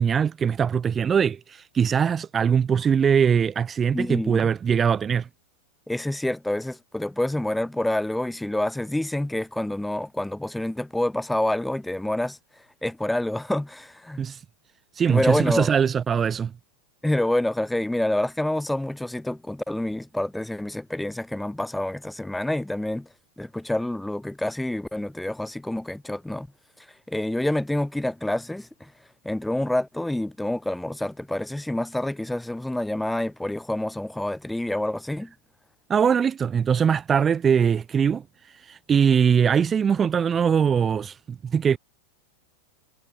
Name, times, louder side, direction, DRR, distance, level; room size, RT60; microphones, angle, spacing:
voice 1, 0.0-5.3 14.2-14.4 14.9-16.5 35.9-41.8, right 7 dB, 20° right, 0.4 m, -22 dB
voice 2, 3.9-4.5 5.9-12.4 12.8-14.2 15.1-15.7 17.0-23.1 23.4-26.5 27.1-28.9 29.2-35.3, left 1 dB, 5° left, 1.3 m, -27 dB
figure-of-eight pair, 90°, 0 cm